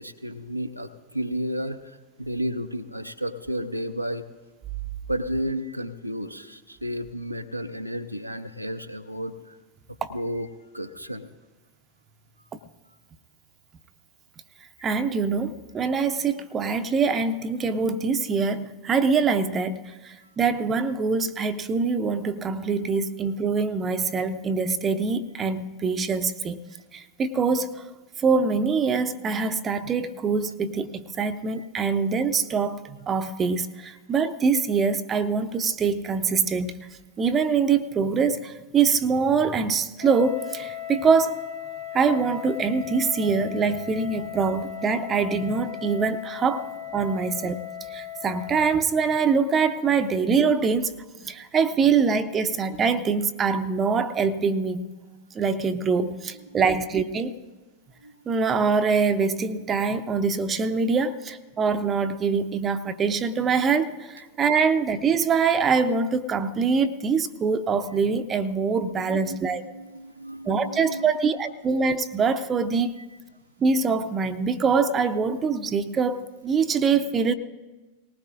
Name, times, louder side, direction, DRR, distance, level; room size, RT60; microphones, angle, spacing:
voice 1, 0.0-4.2 5.1-9.6 10.1-10.5 10.7-11.3 14.8-14.9 56.5-56.7 58.0-58.1 69.1-69.4 69.7-71.1, equal, 90° right, 6 dB, 0.6 m, -32 dB
voice 2, 14.8-26.6 26.9-27.8 28.2-36.7 37.2-41.4 41.9-47.6 47.9-50.9 51.2-54.9 55.3-57.3 58.3-69.6 70.5-72.9 73.6-77.3, right 5 dB, 25° right, 9 dB, 0.6 m, -24 dB
Wind instrument woodwind instrument, 40.0-48.9, left 11 dB, 55° left, 1.1 m, -37 dB
19.0 x 19.0 x 2.5 m, 1.2 s
figure-of-eight pair, 90°, 0 cm